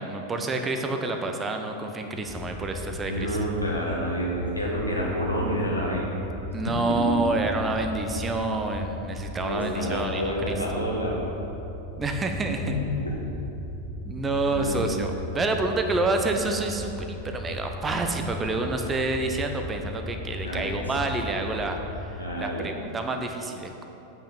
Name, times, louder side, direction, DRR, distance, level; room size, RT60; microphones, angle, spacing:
voice 1, 0.0-3.4 6.5-10.8 12.0-12.8 14.0-21.8 22.1-23.8, right 2 dB, 15° right, 4 dB, 0.7 m, -28 dB
sound 1, 2.3-22.1, left 1 dB, 15° left, 0.9 m, -37 dB
voice 2, 3.1-6.1 6.7-7.2 9.4-11.2 12.6-13.1 14.4-14.8 20.4-20.7 22.2-22.7, equal, 85° left, -4 dB, 1.8 m, -29 dB
8.5 x 5.7 x 5.6 m, 3.0 s
figure-of-eight pair, 90°, 0 cm